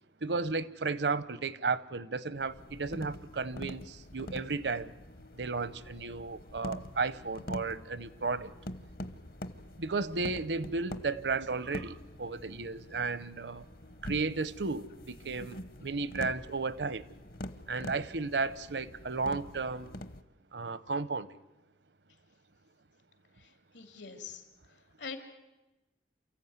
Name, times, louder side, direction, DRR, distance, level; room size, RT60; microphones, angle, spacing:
voice 1, 0.2-4.9 5.3-8.5 9.8-13.6 14.0-17.0 17.7-19.9 20.5-21.3, right 4 dB, 75° right, 0.9 m, -34 dB
sound 1, 2.3-20.2, left 1 dB, 55° left, 1.0 m, -45 dB
voice 2, 23.3-25.2, left 5 dB, 85° left, 3.0 m, -45 dB
28.5 x 15.0 x 9.6 m
head